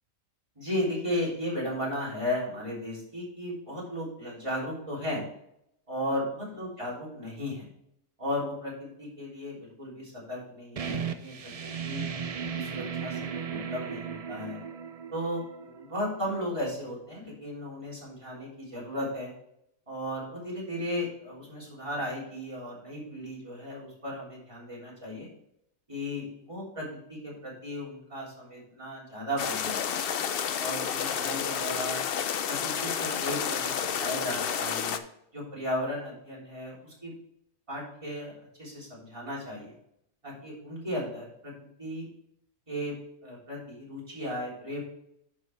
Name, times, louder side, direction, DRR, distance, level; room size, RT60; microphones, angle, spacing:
voice 1, 0.6-5.2 5.9-7.7 8.2-12.0 12.5-14.6 15.1-19.3 19.9-25.3 25.9-29.9 30.6-32.0 32.5-35.0 35.3-37.1 37.7-38.3 38.6-39.8 40.2-42.1 42.7-43.0 43.2-44.8, left 1 dB, 25° right, -6 dB, 3.6 m, -35 dB
sound 1, 10.8-16.2, right 7 dB, 65° right, 0.3 m, -36 dB
sound 2, 29.4-35.0, left 8 dB, 55° left, 0.7 m, -30 dB
11.0 x 5.5 x 3.3 m, 0.76 s
omnidirectional pair, 1.4 m